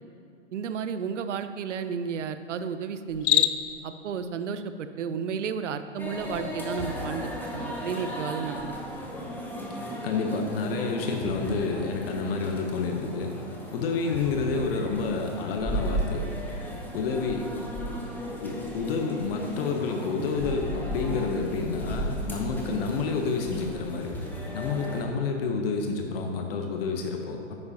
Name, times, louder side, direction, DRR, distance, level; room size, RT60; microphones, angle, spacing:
voice 1, 0.5-3.4 3.8-8.8, right 6 dB, 75° right, 11 dB, 0.7 m, -32 dB
Cricket, 3.1-3.8, left 11 dB, 70° left, 0.5 m, -24 dB
sound 1, 6.0-25.0, equal, 5° left, 1.0 m, -35 dB
voice 2, 10.0-13.3 13.7-16.2 16.9-17.5 18.4-24.1 24.5-27.5, left 4 dB, 50° left, 3 dB, 1.1 m, -29 dB
9.6 x 9.5 x 2.9 m, 2.5 s
hypercardioid pair, 125°, 37 cm